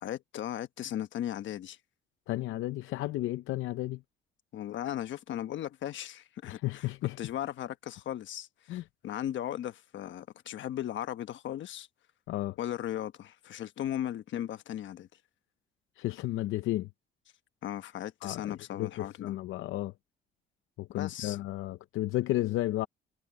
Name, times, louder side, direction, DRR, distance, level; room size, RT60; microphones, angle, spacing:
voice 1, 0.0-1.8 4.5-6.9 7.2-11.9 12.6-15.1 17.6-19.3 21.0-21.4, left 11 dB, 70° left, 1.2 m, -37 dB
voice 2, 2.3-4.0 6.5-7.2 8.7-8.8 12.3-12.6 16.0-16.9 18.2-19.9 20.8-22.9, left 16 dB, 85° left, 0.6 m, -33 dB
cardioid pair, 90°, 20 cm